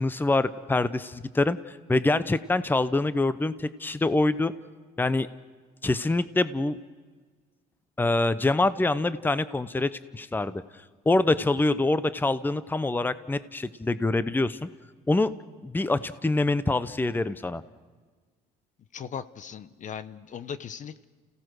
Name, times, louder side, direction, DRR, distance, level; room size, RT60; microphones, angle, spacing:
voice 1, 0.0-4.5 5.0-5.3 5.8-6.8 8.0-10.6 11.1-14.7 15.1-15.3 15.6-17.6, left 2 dB, 10° left, 14 dB, 0.8 m, -25 dB
voice 2, 18.9-21.1, left 7 dB, 50° left, 14 dB, 0.9 m, -38 dB
29.5 x 17.0 x 6.3 m, 1.4 s
supercardioid pair, 80°, 17 cm